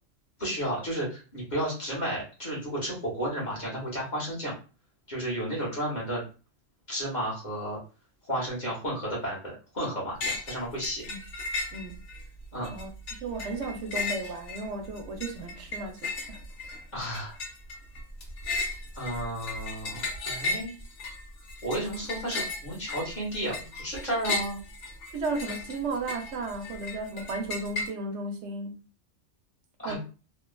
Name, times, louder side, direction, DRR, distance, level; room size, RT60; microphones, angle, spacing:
voice 1, 0.4-4.5 5.1-6.2 6.9-7.8 8.2-11.0 12.5-12.7 16.9-17.4 18.9-20.7 21.6-24.6 29.8-30.0, right 1 dB, 40° left, 1.3 m, -32 dB
sound 1, 10.2-10.6 10.8-12.2 12.6-27.9, left 3 dB, 80° left, 1.3 m, -35 dB
voice 2, 11.7-12.0 12.7-16.8 22.3-22.4 25.1-28.8 29.8-30.0, right 3 dB, 75° right, 0.9 m, -35 dB
2.9 x 2.3 x 2.2 m
omnidirectional pair, 1.2 m